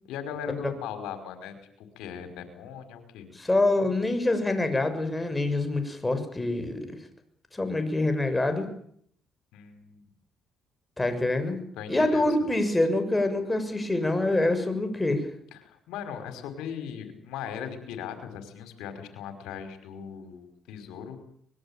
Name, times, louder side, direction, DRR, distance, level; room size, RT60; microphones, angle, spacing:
voice 1, 0.1-3.3 9.5-10.1 11.8-12.3 15.5-21.2, left 8 dB, 85° left, 8 dB, 5.2 m, -39 dB
voice 2, 3.3-7.0 7.5-8.7 11.0-11.6 11.9-15.3, left 2 dB, 15° left, 7 dB, 6.8 m, -25 dB
25.0 x 22.0 x 9.0 m, 0.66 s
supercardioid pair, 75°, 0 cm